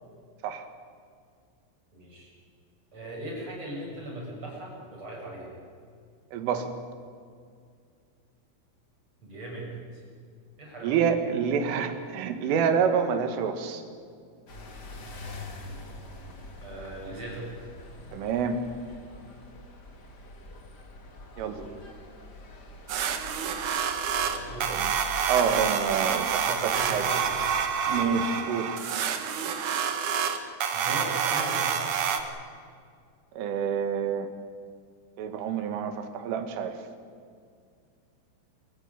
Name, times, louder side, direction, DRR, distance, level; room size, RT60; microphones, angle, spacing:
voice 1, 1.9-2.3 2.9-5.5 9.2-10.0 10.6-11.0 16.6-17.5 21.4-21.7 24.2-24.7 26.4-27.4 27.8-28.5 30.7-32.1, right 1 dB, 25° right, -3 dB, 8.5 m, -39 dB
voice 2, 6.3-6.7 10.8-13.8 18.1-18.6 21.4-21.6 24.7-24.9 25.3-27.1 27.9-28.7 33.4-34.3 35.2-36.8, right 7 dB, 80° right, 8 dB, 4.3 m, -27 dB
sound 1, 14.5-27.6, left 2 dB, 50° left, 1.2 m, -45 dB
sound 2, 22.9-32.2, right 7 dB, 60° right, 2.2 m, -28 dB
27.0 x 15.0 x 9.8 m, 2.2 s
omnidirectional pair, 5.7 m